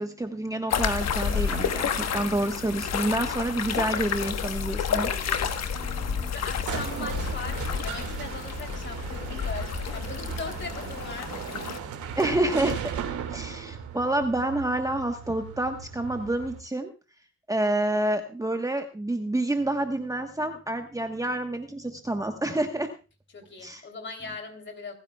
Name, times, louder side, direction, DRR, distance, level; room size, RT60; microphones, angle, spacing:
voice 1, 0.0-5.1 5.7-6.3 12.1-12.8 13.3-16.9 17.5-22.9 23.6-23.8, right 1 dB, 10° right, 5 dB, 1.2 m, -28 dB
sound 1, 0.7-11.8, left 7 dB, 60° left, 1.3 m, -30 dB
sound 2, 1.3-16.6, right 8 dB, 75° right, 2.2 m, -38 dB
voice 2, 4.8-5.3 6.3-11.3 23.3-24.9, left 4 dB, 40° left, 5 dB, 3.2 m, -39 dB
27.0 x 9.7 x 2.3 m, 0.33 s
cardioid pair, 90°, 30 cm